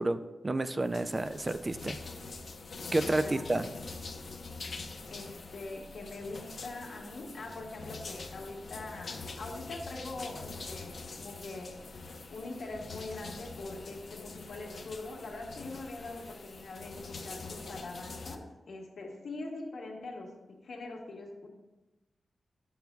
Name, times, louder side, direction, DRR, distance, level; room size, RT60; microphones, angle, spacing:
voice 1, 0.0-2.0 2.9-3.7, right 2 dB, 30° right, 10 dB, 0.3 m, -30 dB
sound 1, 0.8-18.4, left 3 dB, 60° left, 0.6 m, -44 dB
voice 2, 3.1-3.4 5.1-11.8 12.3-21.5, left 2 dB, 80° left, -1 dB, 1.5 m, -43 dB
10.5 x 7.1 x 2.3 m, 1.1 s
wide cardioid pair, 95°, 0 cm